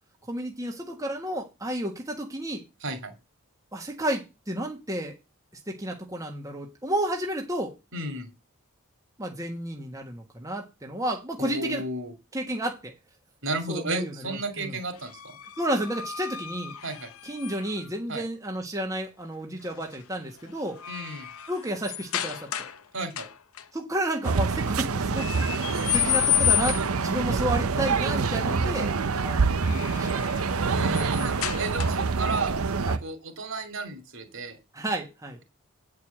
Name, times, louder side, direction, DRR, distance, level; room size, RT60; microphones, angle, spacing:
voice 1, 0.3-2.6 3.7-5.1 5.7-7.7 9.2-11.8 12.3-12.9 13.7-14.1 14.6-14.7 15.6-16.7 17.2-20.8 21.5-22.7 23.7-25.6 25.9-29.4 29.7-30.2 32.8-33.0 34.7-35.4, right 1 dB, 15° right, 1 dB, 1.4 m, -31 dB
voice 2, 2.8-3.1 7.9-8.3 11.4-12.1 13.4-15.4 16.8-17.1 18.1-18.2 20.9-21.3 22.9-23.3 30.7-32.5 33.0-34.6, right 2 dB, 60° right, 7 dB, 2.8 m, -33 dB
sound 1, 15.0-17.9 19.6-20.0 20.4-22.8 23.1-23.6 25.2-27.1 29.4-32.2, left 13 dB, 70° left, 0.8 m, -31 dB
sound 2, 24.2-33.0, right 4 dB, 75° right, 0.8 m, -26 dB
9.5 x 4.8 x 7.4 m, 0.26 s
head